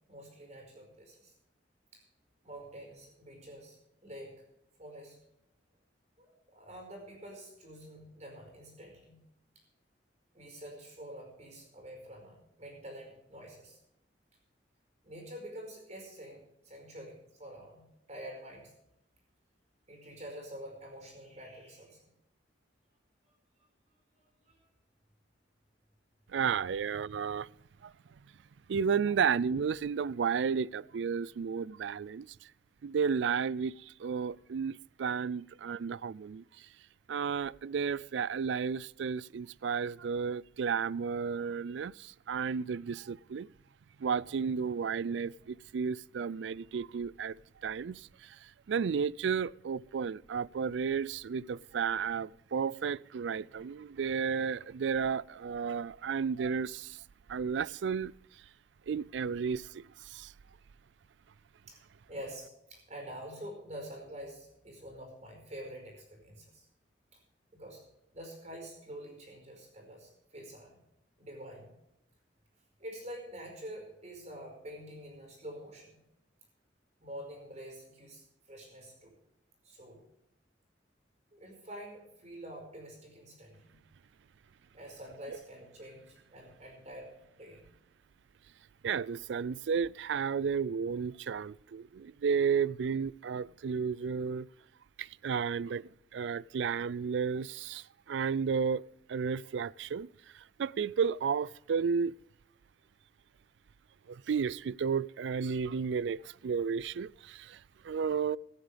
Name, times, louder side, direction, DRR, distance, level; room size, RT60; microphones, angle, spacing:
voice 1, 0.1-1.3 1.9-2.0 2.4-4.4 4.8-5.2 6.2-9.2 10.3-13.8 15.0-18.7 19.9-22.0 24.4-24.6 61.7-61.8 62.1-66.7 67.5-67.8 68.1-70.8 71.2-71.7 72.8-76.0 77.0-79.1 79.6-80.0 81.3-83.8 84.7-87.6, equal, 40° right, 5.0 m, -47 dB
voice 2, 26.3-27.5 27.8-27.9 28.7-32.3 32.8-36.7 37.1-43.5 44.0-47.4 47.6-57.0 57.3-58.1 58.9-60.3 88.8-94.5 95.0-98.8 99.1-100.1 100.3-102.1 104.1-108.4, right 6 dB, 70° right, 0.4 m, -33 dB
18.0 x 13.0 x 3.4 m
head